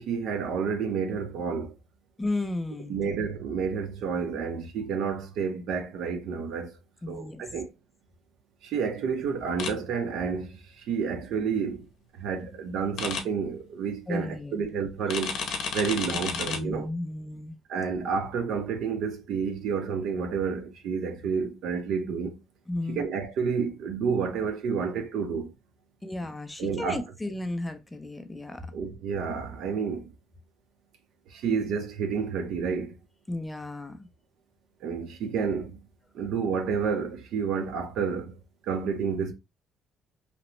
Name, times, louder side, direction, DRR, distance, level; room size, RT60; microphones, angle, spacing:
voice 1, 0.0-1.8 2.9-6.8 7.1-7.7 8.6-15.4 15.7-16.9 17.7-22.4 22.9-25.5 26.6-27.0 28.7-30.1 31.3-33.0 34.8-35.8 36.1-38.4 38.6-39.3, right 6 dB, 65° right, 0.6 m, -30 dB
voice 2, 2.2-3.0 7.0-7.4 14.1-14.6 16.3-17.5 22.7-23.0 26.0-28.7 33.3-34.1, left 2 dB, 10° left, 0.3 m, -34 dB
sound 1, 9.6-9.7 13.0-13.2 15.1-16.6, left 6 dB, 65° left, 0.6 m, -31 dB
2.9 x 2.0 x 3.0 m
cardioid pair, 155°, 0 cm